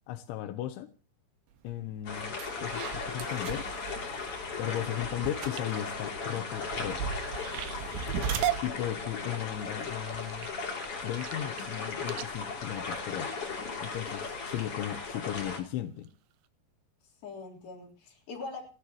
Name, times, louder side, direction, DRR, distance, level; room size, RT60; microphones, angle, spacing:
voice 1, 0.1-0.9 1.6-3.7 4.6-7.1 8.6-10.5 11.0-13.3 13.8-16.1, left 12 dB, 90° left, 7 dB, 3.3 m, -36 dB
sound 1, 1.7-1.8 2.2-10.5, right 7 dB, 85° right, 4.2 m, -40 dB
sound 2, 2.1-15.6, left 4 dB, 35° left, 3.4 m, -37 dB
sound 3, 5.2-13.9 14.4-14.8 15.2-15.6 16.0-16.1 16.4-16.5, right 13 dB, 70° right, 2.5 m, -39 dB
voice 2, 8.3-8.9 17.2-18.7, left 3 dB, 55° left, 0 dB, 5.5 m, -43 dB
30.0 x 11.5 x 3.0 m, 0.36 s
omnidirectional pair, 5.2 m